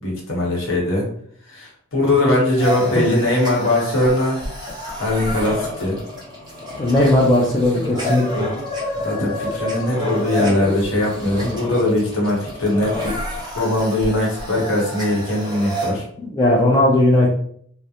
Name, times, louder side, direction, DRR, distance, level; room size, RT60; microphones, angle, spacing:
voice 1, 0.0-1.0 1.5-4.4 5.0-6.0 9.0-13.1 13.5-16.0, left 1 dB, 70° left, -2 dB, 1.0 m, -20 dB
sound 1, 2.6-15.9, equal, 20° right, 0.8 m, -29 dB
voice 2, 6.8-8.5 16.2-17.3, left 1 dB, 20° left, -5 dB, 0.4 m, -17 dB
2.3 x 2.0 x 2.8 m, 0.62 s
head